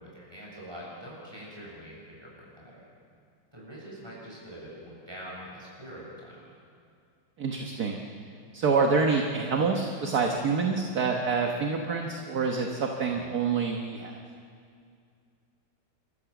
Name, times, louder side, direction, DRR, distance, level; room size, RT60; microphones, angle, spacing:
voice 1, 0.0-2.8 3.5-6.4 13.0-13.3, equal, 10° right, -5 dB, 7.4 m, -44 dB
voice 2, 7.4-7.9 8.5-14.1, right 4 dB, 55° right, 2 dB, 1.7 m, -27 dB
29.5 x 14.0 x 7.1 m, 2.3 s
omnidirectional pair, 2.0 m